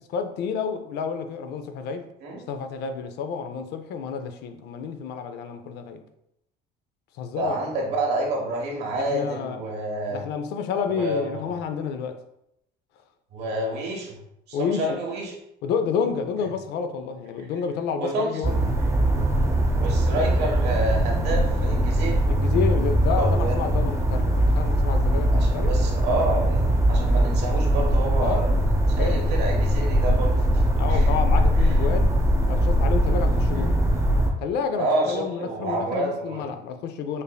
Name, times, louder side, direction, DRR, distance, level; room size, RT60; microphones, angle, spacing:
voice 1, 0.1-2.0 2.5-6.0 7.2-7.5 8.9-9.6 10.1-12.2 14.5-15.0 15.6-18.6 22.3-25.7 28.2-28.7 29.0-29.2 30.8-32.2 32.5-33.8 34.4-37.2, left 6 dB, 80° left, 8 dB, 0.5 m, -29 dB
voice 2, 7.4-10.2 10.9-11.4 13.3-14.2 14.5-15.3 18.0-18.4 19.8-22.2 23.1-23.5 25.3-28.5 28.9-30.3 30.9-31.1 33.5-33.6 34.8-36.4, right 1 dB, 80° right, -1 dB, 1.1 m, -28 dB
sound 1, 18.4-34.3, right 1 dB, 15° right, 0.6 m, -21 dB
5.2 x 2.6 x 2.2 m, 0.78 s
cardioid pair, 110°, 17 cm